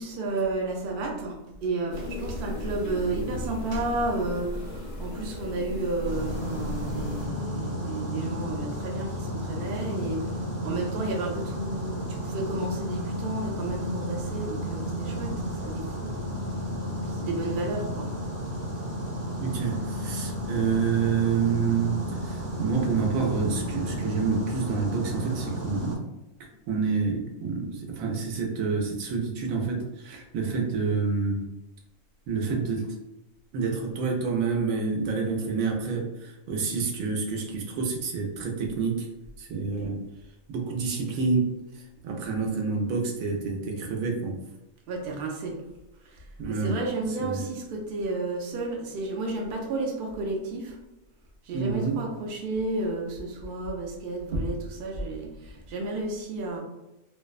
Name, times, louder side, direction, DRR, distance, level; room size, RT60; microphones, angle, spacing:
voice 1, 0.0-16.2 17.1-18.1 44.9-45.6 46.0-50.8 51.4-56.6, right 2 dB, 60° right, 0 dB, 0.6 m, -32 dB
sound 1, 1.9-7.3, equal, 75° left, 1.0 m, -36 dB
sound 2, 6.1-26.0, equal, 20° right, 0.4 m, -33 dB
voice 2, 19.4-26.1 26.7-31.4 32.3-32.9 33.5-39.1 39.4-40.0 40.5-44.4 46.4-46.8 47.2-47.4 51.5-52.0, right 5 dB, 85° right, 0 dB, 1.0 m, -28 dB
2.6 x 2.1 x 2.3 m, 0.94 s
omnidirectional pair, 1.4 m